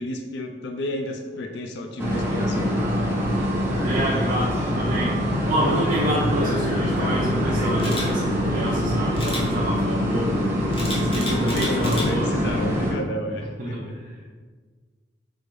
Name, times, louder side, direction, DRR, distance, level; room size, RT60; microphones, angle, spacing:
voice 1, 0.0-2.8 11.5-13.9, left 1 dB, 70° left, 4 dB, 0.3 m, -31 dB
sound 1, 2.0-12.9, equal, 15° right, 0.8 m, -24 dB
voice 2, 3.8-5.2 5.5-10.5 11.0-12.3 13.6-14.1, right 1 dB, 50° right, -5 dB, 0.5 m, -28 dB
Camera, 7.8-8.1 9.2-9.4 10.7-12.1 12.6-12.8, left 2 dB, 30° left, 0.8 m, -31 dB
4.6 x 2.5 x 3.1 m, 1.5 s
head